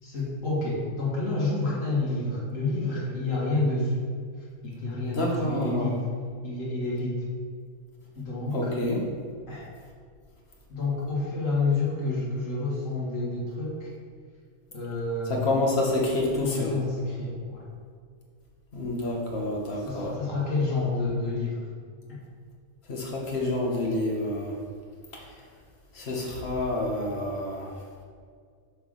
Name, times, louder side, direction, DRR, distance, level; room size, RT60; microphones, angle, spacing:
voice 1, 0.0-4.0 4.6-6.0 6.4-7.2 8.2-8.7 9.5-9.7 10.7-13.9 14.7-15.6 16.3-17.6 19.7-21.7, left 2 dB, 80° left, -6 dB, 2.2 m, -29 dB
voice 2, 5.1-5.9 8.5-9.0 15.3-16.8 18.7-20.2 22.9-24.5 25.1-25.2 25.9-27.7, left 1 dB, 55° left, -2 dB, 1.5 m, -28 dB
6.6 x 3.7 x 6.3 m, 2.1 s
omnidirectional pair, 1.3 m